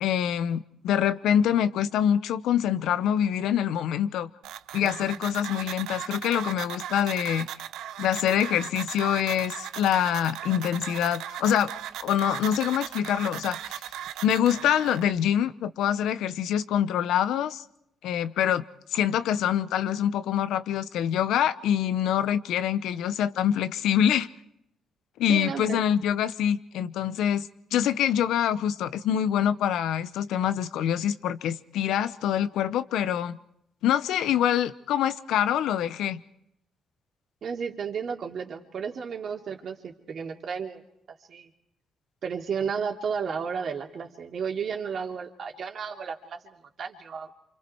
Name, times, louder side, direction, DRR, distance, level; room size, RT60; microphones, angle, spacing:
voice 1, 0.0-4.3 4.7-7.5 8.0-11.7 12.0-13.8 14.2-17.6 18.0-18.6 18.9-24.3 25.2-33.4 33.8-36.2, left 10 dB, 85° left, 0.9 m, -25 dB
sound 1, 4.4-15.1, right 11 dB, 85° right, 0.8 m, -38 dB
voice 2, 25.3-25.8 37.4-40.8 41.1-41.5 42.2-46.4 46.8-47.3, right 6 dB, 55° right, 3.2 m, -33 dB
28.0 x 26.0 x 4.7 m
cardioid pair, 90°, 0 cm